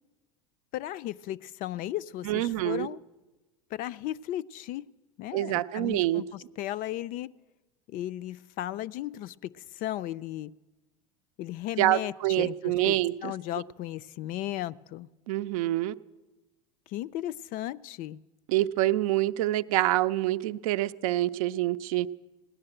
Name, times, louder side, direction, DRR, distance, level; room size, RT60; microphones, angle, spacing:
voice 1, 0.7-3.0 3.7-4.9 5.2-7.3 7.9-10.5 11.4-13.0 13.2-15.1 16.9-18.2, left 13 dB, 50° left, 16 dB, 0.4 m, -35 dB
voice 2, 2.2-2.9 5.3-6.2 11.8-13.3 15.3-15.9 18.5-22.1, right 15 dB, 75° right, 13 dB, 0.5 m, -26 dB
17.0 x 11.0 x 7.7 m, 1.2 s
hypercardioid pair, 95°, 18 cm